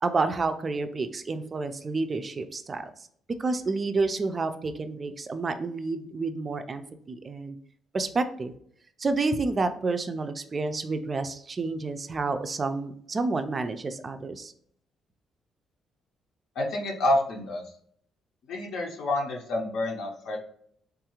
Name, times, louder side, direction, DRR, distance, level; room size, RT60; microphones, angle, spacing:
voice 1, 0.0-2.9 3.4-7.6 7.9-8.5 9.0-14.5, right 3 dB, 30° right, 9 dB, 0.3 m, -29 dB
voice 2, 16.6-17.6 18.5-20.4, left 1 dB, 75° left, 0 dB, 0.6 m, -28 dB
3.5 x 2.3 x 2.9 m, 0.63 s
cardioid pair, 130°, 0 cm